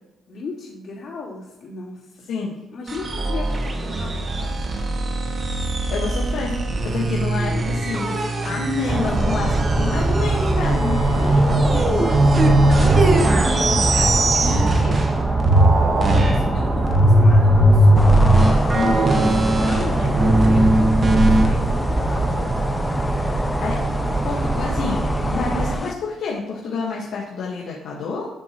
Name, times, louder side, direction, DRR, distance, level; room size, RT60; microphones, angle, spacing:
voice 1, 0.3-2.2 2.7-4.6 7.3-7.6 11.9-12.2 12.6-15.0 15.8-18.1 18.5-22.5, left 2 dB, 60° left, -6 dB, 3.3 m, -35 dB
sound 1, 2.9-15.1 15.4-21.5, right 1 dB, 35° right, 1.3 m, -19 dB
voice 2, 5.9-6.6 6.8-8.2 8.4-12.2 18.7-19.1 23.6-23.8 24.2-28.3, left 4 dB, 80° left, -4 dB, 1.5 m, -28 dB
sound 2, 8.9-25.8, right 2 dB, 15° right, 1.2 m, -23 dB
sound 3, 18.0-25.9, left 3 dB, 25° left, 0.6 m, -32 dB
12.5 x 6.4 x 3.0 m, 1.1 s
cardioid pair, 100°, 0 cm